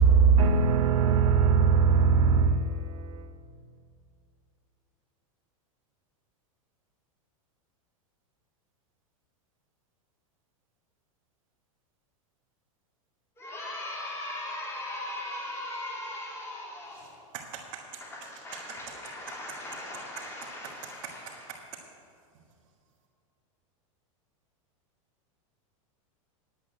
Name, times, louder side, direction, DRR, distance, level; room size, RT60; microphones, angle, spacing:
voice 1, 0.0-3.3, right 5 dB, 80° right, 0.9 m, -21 dB
voice 2, 13.4-17.2 18.2-20.9, left 1 dB, 15° left, 2.9 m, -38 dB
voice 3, 16.9-19.6 20.2-21.8, right 7 dB, 55° right, 1.6 m, -45 dB
10.5 x 8.6 x 8.2 m
supercardioid pair, 140°, 17 cm